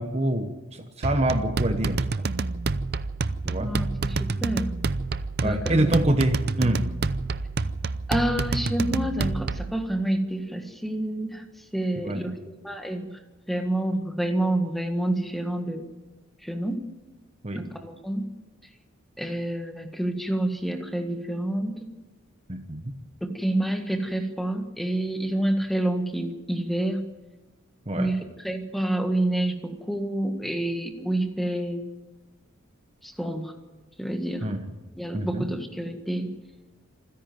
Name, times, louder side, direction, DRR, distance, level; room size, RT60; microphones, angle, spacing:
voice 1, 0.0-2.2 3.4-3.7 5.4-6.8 11.9-12.4 17.4-17.6 22.5-22.8 27.9-28.1 34.4-34.6 35.1-35.4, right 1 dB, 30° right, 7 dB, 1.1 m, -26 dB
sound 1, 1.0-9.8, right 3 dB, 50° right, 0.6 m, -28 dB
voice 2, 3.6-4.7 5.4-6.0 8.1-11.4 11.7-13.2 13.5-15.8 16.4-16.9 17.5-18.3 19.2-21.9 23.2-27.1 27.9-31.8 33.0-33.6 34.0-34.5 35.0-36.3, right 1 dB, ahead, 5 dB, 1.6 m, -28 dB
27.0 x 10.5 x 9.4 m, 1.2 s
head